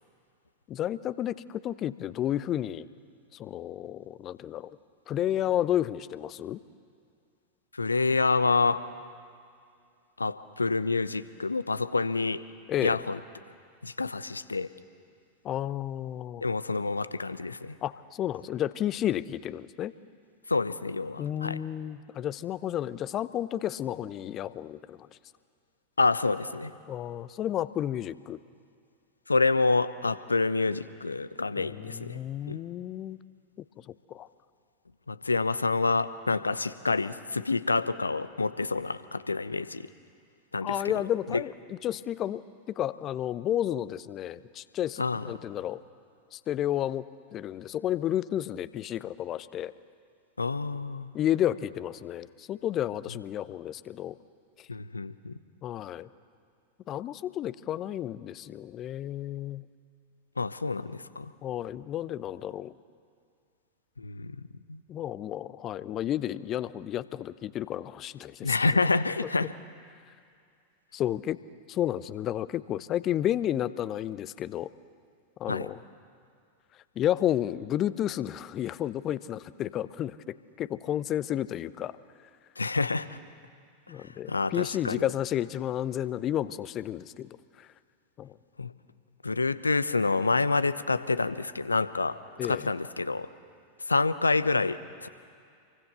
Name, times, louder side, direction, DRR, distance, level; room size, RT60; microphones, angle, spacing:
voice 1, 0.7-2.9 3.3-4.7 5.1-6.6 12.7-13.0 15.4-16.4 17.8-19.9 21.2-25.1 26.9-28.4 31.6-33.2 34.1-34.3 40.6-45.8 46.3-47.1 47.3-49.7 51.1-54.2 55.6-56.1 56.9-59.6 61.4-62.7 64.9-68.6 69.2-69.3 70.9-71.4 71.7-74.7 75.4-75.8 77.0-80.2 80.6-82.0 83.9-87.7 88.2-88.3 92.4-92.7, left 11 dB, 30° left, 17 dB, 0.8 m, -31 dB
voice 2, 7.8-8.8 10.2-12.4 12.8-13.2 13.8-14.7 16.4-17.8 20.5-21.6 26.0-26.7 29.3-32.2 32.5-32.6 35.1-39.9 40.5-40.8 41.3-41.4 45.0-45.2 50.4-51.1 54.7-55.3 60.4-61.3 64.0-64.4 64.7-64.8 68.4-69.5 75.5-75.7 82.6-83.2 84.3-85.1 88.6-88.7 89.2-93.3 93.9-95.1, left 3 dB, 80° left, 15 dB, 0.9 m, -27 dB
28.0 x 23.5 x 6.9 m, 2.3 s
figure-of-eight pair, 90°, 0 cm